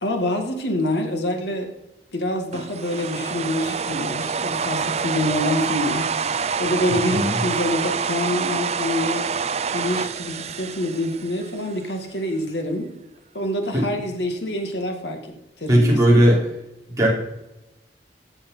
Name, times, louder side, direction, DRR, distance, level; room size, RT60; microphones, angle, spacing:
voice 1, 0.0-1.7 2.1-9.3 9.7-12.9 13.3-15.2 15.6-16.3, left 1 dB, 75° left, 4 dB, 2.3 m, -26 dB
sound 1, 2.5-11.7, right 6 dB, 35° right, 0.5 m, -27 dB
voice 2, 15.7-16.4 16.9-17.1, equal, 20° right, -4 dB, 4.0 m, -16 dB
14.5 x 7.3 x 5.8 m, 0.94 s
head